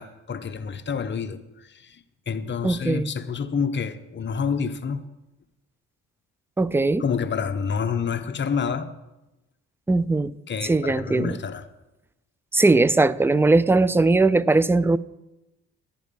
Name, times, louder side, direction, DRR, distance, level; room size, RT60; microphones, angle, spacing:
voice 1, 0.0-5.0 7.0-8.9 10.5-11.6, left 6 dB, 35° left, 1.0 m, -28 dB
voice 2, 2.6-3.1 6.6-7.0 9.9-10.3 10.6-11.4 12.5-15.0, right 3 dB, 10° right, 0.3 m, -19 dB
11.0 x 10.5 x 5.3 m
cardioid pair, 90°, 30 cm